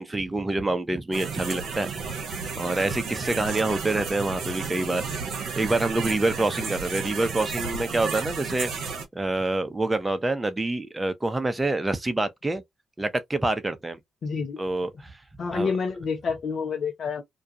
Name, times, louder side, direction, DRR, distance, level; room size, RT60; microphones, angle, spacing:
voice 1, 0.0-1.9 2.6-5.0 5.3-8.7 9.1-12.6 13.0-14.0 14.6-15.1 15.5-15.7, right 2 dB, 20° right, 0.7 m, -26 dB
sound 1, 1.1-9.0, right 5 dB, 70° right, 0.8 m, -33 dB
voice 2, 14.2-14.6 15.4-17.2, left 5 dB, 60° left, 0.6 m, -28 dB
2.3 x 2.3 x 2.7 m
hypercardioid pair, 40°, 0 cm